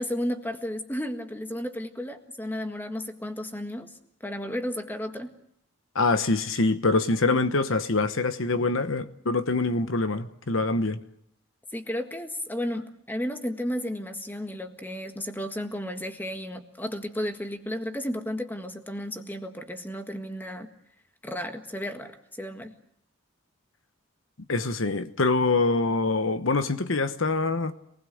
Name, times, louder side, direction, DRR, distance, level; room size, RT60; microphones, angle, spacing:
voice 1, 0.0-5.3 11.7-20.7 21.2-22.7, equal, 10° left, 1.7 m, -33 dB
voice 2, 5.9-11.0 24.5-27.7, left 3 dB, 65° left, 1.1 m, -25 dB
26.5 x 20.0 x 7.8 m
head